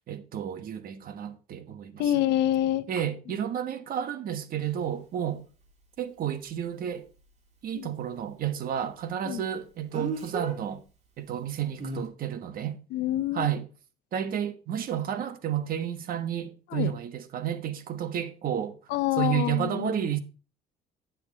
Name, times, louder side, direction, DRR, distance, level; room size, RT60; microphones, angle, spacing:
voice 1, 0.1-2.1 2.9-5.4 6.0-7.1 7.6-10.8 11.2-12.8 13.3-13.7 14.1-18.8 19.2-20.2, right 9 dB, 60° right, 1.3 m, -31 dB
voice 2, 2.0-2.9 7.7-7.9 9.2-9.4 12.9-13.5 16.7-16.9 18.9-19.9, left 13 dB, 85° left, 0.8 m, -26 dB
Speech, 4.6-4.7 9.9-10.6 11.8-12.0, right 3 dB, 40° right, 2.8 m, -33 dB
10.5 x 7.6 x 3.9 m
cardioid pair, 110°, 17 cm